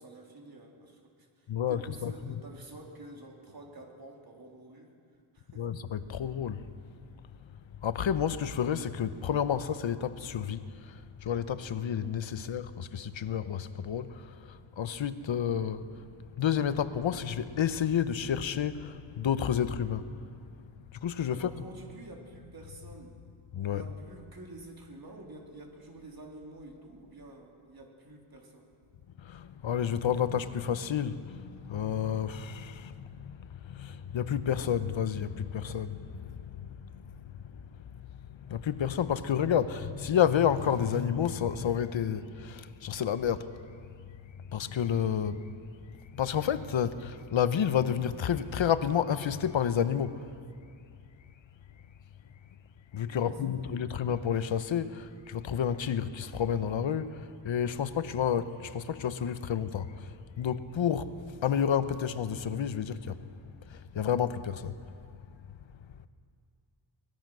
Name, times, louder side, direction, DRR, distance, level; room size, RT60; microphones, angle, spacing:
voice 1, 0.0-4.9 5.3-5.7 21.3-23.2 23.6-28.7 53.1-53.4 53.8-53.9, right 2 dB, 45° right, 3.4 m, -49 dB
voice 2, 1.5-2.3 5.6-6.6 7.8-10.9 11.2-15.8 16.4-20.1 20.9-21.5 23.5-23.8 29.2-37.1 37.5-37.6 38.2-43.5 44.5-45.4 46.1-50.2 52.9-60.1 60.4-63.2 63.7-64.8, left 8 dB, 65° left, 1.0 m, -30 dB
24.0 x 19.5 x 6.3 m
wide cardioid pair, 110°, 49 cm